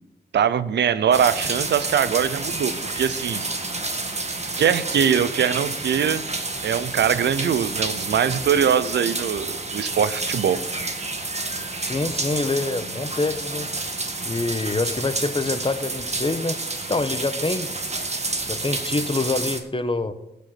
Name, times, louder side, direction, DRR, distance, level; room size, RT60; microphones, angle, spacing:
voice 1, 0.3-3.5 4.6-6.2 6.6-10.6, right 8 dB, 85° right, 15 dB, 0.6 m, -22 dB
sound 1, 1.1-19.6, right 3 dB, 40° right, 1.7 m, -29 dB
voice 2, 11.8-13.7 14.2-16.6 16.9-17.7 18.5-20.1, left 3 dB, 30° left, 11 dB, 1.1 m, -26 dB
15.5 x 5.2 x 5.9 m, 0.90 s
cardioid pair, 50°, 18 cm